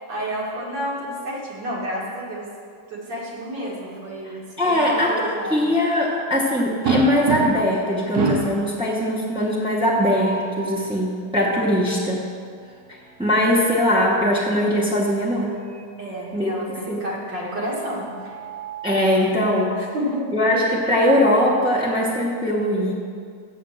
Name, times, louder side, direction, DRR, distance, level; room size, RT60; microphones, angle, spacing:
voice 1, 0.1-2.5 2.9-4.4 4.7-5.6 16.0-18.3 19.1-19.4 19.6-20.3, equal, 80° right, -5 dB, 2.5 m, -30 dB
voice 2, 4.6-12.2 13.2-15.6 16.3-16.5 16.9-17.0 18.8-19.7 20.3-22.9, equal, 5° right, -7 dB, 0.5 m, -21 dB
sound 1, 6.8-7.8 8.1-8.6 9.9-10.6 13.3-14.3 15.7-15.9 16.3-16.4 17.9-19.2, right 3 dB, 65° right, 1.4 m, -27 dB
6.7 x 6.7 x 7.5 m, 2.2 s
omnidirectional pair, 1.9 m